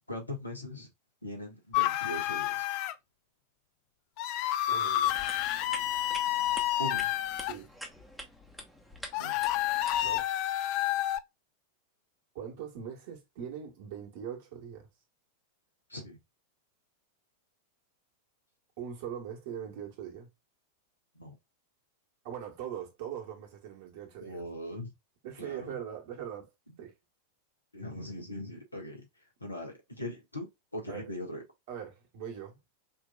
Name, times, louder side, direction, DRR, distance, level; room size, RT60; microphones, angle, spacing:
voice 1, 0.1-0.9 1.2-2.7 6.8-7.1 9.1-9.4 15.9-16.2 21.1-21.3 24.2-24.9 25.4-25.7 27.7-29.1 29.4-31.4, left 1 dB, 85° left, 1.5 m, -40 dB
sound 1, 1.7-2.9 4.2-7.5 9.1-11.2, left 13 dB, 45° left, 0.4 m, -29 dB
voice 2, 4.7-5.2 7.5-7.7 10.0-10.3 12.3-14.9 18.8-20.3 22.2-24.5 25.2-26.5 26.8-26.9 30.9-31.1 31.7-32.6, right 9 dB, 50° right, 1.7 m, -41 dB
sound 2, 5.0-10.2, equal, ahead, 1.1 m, -46 dB
5.4 x 3.0 x 2.3 m
figure-of-eight pair, 90°, 0 cm